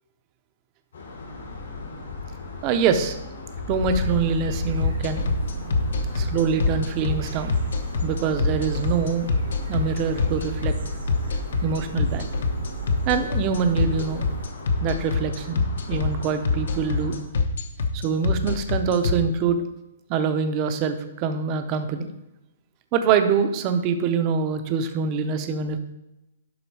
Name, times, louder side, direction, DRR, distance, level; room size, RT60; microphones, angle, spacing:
sound 1, 0.9-17.2, left 3 dB, 85° left, 2.9 m, -36 dB
voice 1, 2.6-3.2 3.7-5.2 6.1-7.5 8.0-9.3 9.7-10.7 11.6-12.2 13.1-14.3 14.8-17.2 17.9-19.6 20.1-22.1 22.9-25.8, right 6 dB, 20° right, 8 dB, 0.5 m, -24 dB
sound 2, 3.8-14.5, right 5 dB, 65° right, 0.8 m, -35 dB
sound 3, 4.8-19.1, left 5 dB, 60° left, 0.9 m, -24 dB
11.0 x 3.8 x 4.6 m, 0.93 s
hypercardioid pair, 180°, 0 cm